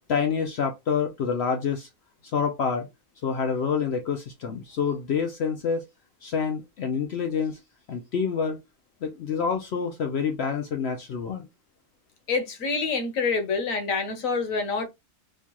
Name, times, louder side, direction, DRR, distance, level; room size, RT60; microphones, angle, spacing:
voice 1, 0.1-1.9 2.3-2.9 3.2-5.8 6.2-7.6 7.9-8.6 9.0-11.5, left 6 dB, 75° left, 0.5 m, -27 dB
voice 2, 12.3-14.8, left 4 dB, 60° left, 1.1 m, -26 dB
4.5 x 2.3 x 2.9 m
omnidirectional pair, 1.7 m